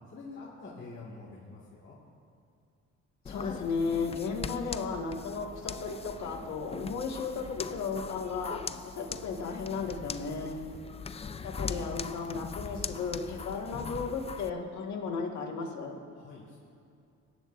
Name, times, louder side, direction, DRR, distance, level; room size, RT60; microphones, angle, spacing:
voice 1, 0.1-2.0 16.1-16.6, left 3 dB, 40° left, -6 dB, 2.0 m, -46 dB
voice 2, 3.3-10.6 11.4-16.0, left 4 dB, 65° left, -1 dB, 1.9 m, -35 dB
sound 1, 3.3-14.5, left 5 dB, 20° left, 0.3 m, -41 dB
21.0 x 10.0 x 2.6 m, 2.5 s
cardioid pair, 90°, 30 cm